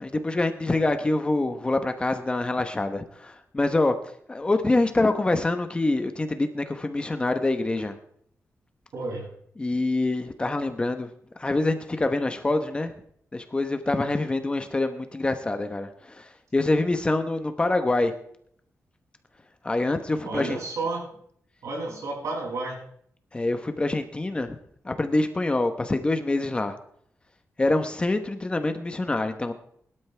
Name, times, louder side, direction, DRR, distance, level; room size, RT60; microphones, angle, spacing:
voice 1, 0.0-3.9 4.3-7.9 9.6-11.1 11.4-12.9 13.3-18.1 19.6-20.6 23.3-24.6 24.8-26.7 27.6-29.5, left 2 dB, 20° left, 8 dB, 1.0 m, -25 dB
voice 2, 8.9-9.3 20.2-21.1 21.6-22.8, right 3 dB, 85° right, -3 dB, 6.8 m, -31 dB
22.0 x 12.0 x 3.4 m, 0.67 s
wide cardioid pair, 160°, 5 cm